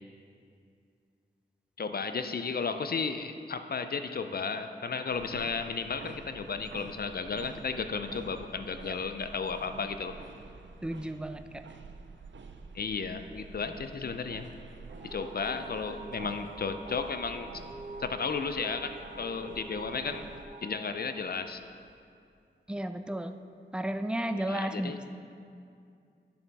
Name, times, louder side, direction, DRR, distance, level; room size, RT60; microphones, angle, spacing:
voice 1, 1.8-10.1 12.7-14.5 15.0-17.5 18.0-20.3 20.6-21.6 24.5-25.0, left 5 dB, 55° left, 8 dB, 0.5 m, -34 dB
sound 1, 5.1-20.5, right 4 dB, 90° right, 0.5 m, -49 dB
voice 2, 10.8-11.7 22.7-23.4 23.7-25.1, right 1 dB, 5° right, 9 dB, 0.3 m, -33 dB
sound 2, 15.0-21.9, right 3 dB, 50° right, 1.5 m, -46 dB
11.0 x 6.9 x 3.5 m, 2.4 s
wide cardioid pair, 80°, 19 cm